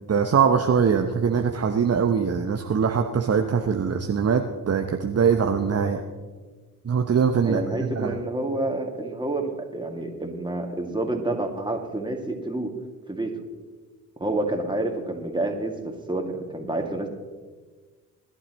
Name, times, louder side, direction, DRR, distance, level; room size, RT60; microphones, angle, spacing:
voice 1, 0.1-6.0 6.8-7.6 7.9-8.2, right 6 dB, 35° right, 5 dB, 1.0 m, -22 dB
voice 2, 7.4-12.7 13.1-13.4 14.2-17.1, right 2 dB, 10° right, 2 dB, 2.4 m, -28 dB
21.0 x 11.5 x 3.1 m, 1.4 s
hypercardioid pair, 45°, 44 cm